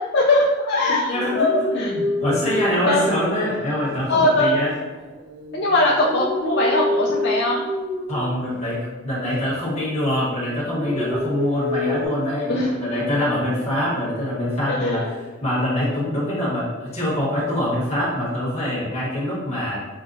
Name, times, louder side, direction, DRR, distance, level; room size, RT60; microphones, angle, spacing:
voice 1, 0.1-1.9 2.9-3.0 4.1-4.6 5.5-7.6 12.5-12.7 14.7-15.1, left 2 dB, 55° left, -3 dB, 0.4 m, -20 dB
voice 2, 1.1-4.7 8.1-15.0 15.4-19.8, left 1 dB, 35° left, -7 dB, 1.4 m, -24 dB
sound 1, 1.1-4.0 4.6-8.8 9.2-10.2 10.5-12.1, left 1 dB, 55° right, 0.9 m, -28 dB
6.0 x 2.1 x 2.6 m, 1.2 s
head